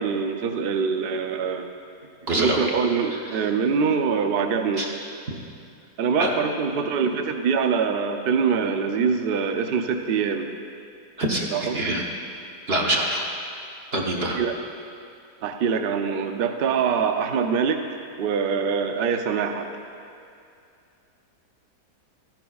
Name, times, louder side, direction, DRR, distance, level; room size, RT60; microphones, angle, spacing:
voice 1, 0.0-1.7 2.3-4.8 6.0-10.5 11.5-11.8 14.4-14.5 15.4-19.7, right 6 dB, 80° right, 6 dB, 0.5 m, -24 dB
voice 2, 2.2-2.6 3.0-3.5 4.8-4.9 6.2-6.4 11.2-12.0 12.7-13.3 13.9-14.4, right 1 dB, 45° right, -2 dB, 1.1 m, -25 dB
14.0 x 10.5 x 2.4 m, 2.5 s
omnidirectional pair, 1.7 m